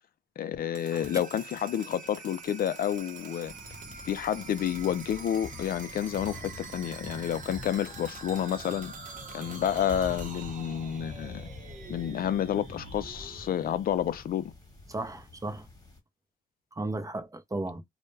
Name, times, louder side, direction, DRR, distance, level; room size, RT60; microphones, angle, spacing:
voice 1, 0.4-3.5 4.1-8.9 9.3-11.5 11.9-14.5, left 10 dB, 65° left, 0.4 m, -30 dB
sound 1, 0.6-14.4, right 4 dB, 50° right, 0.8 m, -45 dB
sound 2, 3.4-16.0, left 2 dB, 20° left, 1.2 m, -46 dB
voice 2, 14.9-15.7 16.7-17.8, right 2 dB, 20° right, 0.6 m, -35 dB
2.1 x 2.1 x 3.2 m
cardioid pair, 70°, 17 cm